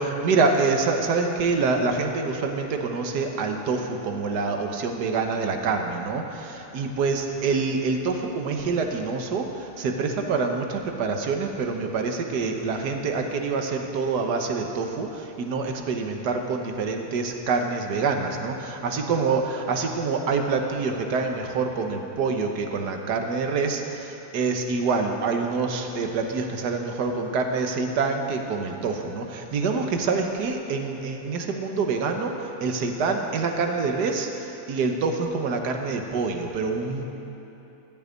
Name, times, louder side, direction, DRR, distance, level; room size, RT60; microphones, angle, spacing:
voice 1, 0.0-37.1, right 4 dB, 85° right, 4 dB, 1.6 m, -26 dB
14.0 x 6.1 x 9.3 m, 3.0 s
omnidirectional pair, 1.7 m